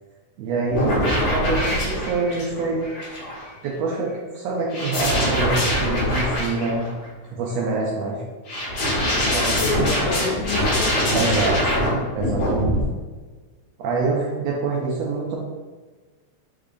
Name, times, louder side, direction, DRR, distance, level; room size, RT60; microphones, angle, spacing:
voice 1, 0.4-2.9 3.6-6.9 7.3-8.2 9.3-9.9 11.1-11.5 12.1-12.8 13.8-15.4, right 3 dB, 80° right, -3 dB, 1.6 m, -25 dB
sound 1, 0.7-3.5 4.7-7.0 8.5-11.9 12.2-12.8, equal, 60° left, 1.7 m, -23 dB
voice 2, 9.5-11.9, left 3 dB, 75° left, -1 dB, 2.0 m, -29 dB
5.1 x 3.6 x 2.5 m, 1.3 s
omnidirectional pair, 3.4 m